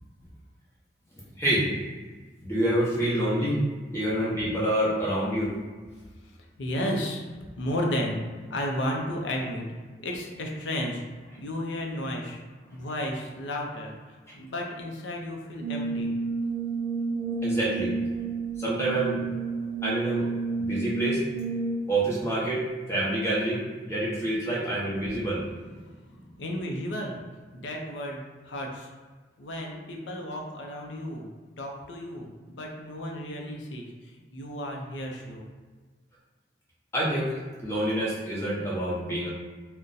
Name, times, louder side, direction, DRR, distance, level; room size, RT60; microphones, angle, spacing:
voice 1, 1.3-1.7 2.4-3.6 3.9-5.5 17.4-17.9 18.6-19.2 19.8-20.3 20.6-21.2 21.9-25.4 36.9-39.3, right 1 dB, 15° left, -7 dB, 0.8 m, -27 dB
voice 2, 6.6-7.2 7.6-8.2 8.5-9.7 10.0-11.0 11.4-12.4 12.7-16.1 25.8-27.2 27.5-28.9 29.4-31.3 31.6-35.4, left 1 dB, 85° left, 0 dB, 0.5 m, -33 dB
Brass instrument, 15.6-22.0, right 3 dB, 70° right, 0.3 m, -30 dB
2.6 x 2.1 x 3.8 m, 1.4 s
head